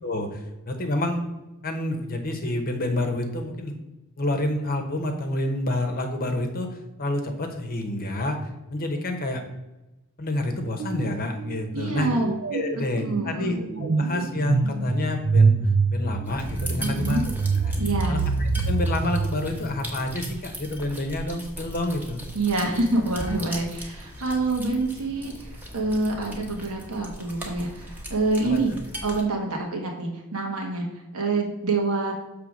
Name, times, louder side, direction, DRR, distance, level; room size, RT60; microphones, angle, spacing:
voice 1, 0.0-1.2 1.6-3.7 4.2-9.4 10.2-12.1 12.5-17.3 17.6-17.8 18.1-22.2 28.4-28.6, left 1 dB, 40° left, 5 dB, 0.9 m, -28 dB
sound 1, 10.8-11.1 11.4-20.2, right 4 dB, 55° right, 0.5 m, -25 dB
voice 2, 11.7-12.3 13.0-13.6 16.8-17.2 17.8-18.2 22.3-28.7 29.0-32.1, right 2 dB, 75° right, 1 dB, 1.5 m, -26 dB
sound 2, 16.2-29.2, equal, 10° right, 1.1 m, -38 dB
6.7 x 3.3 x 6.1 m, 1.0 s
head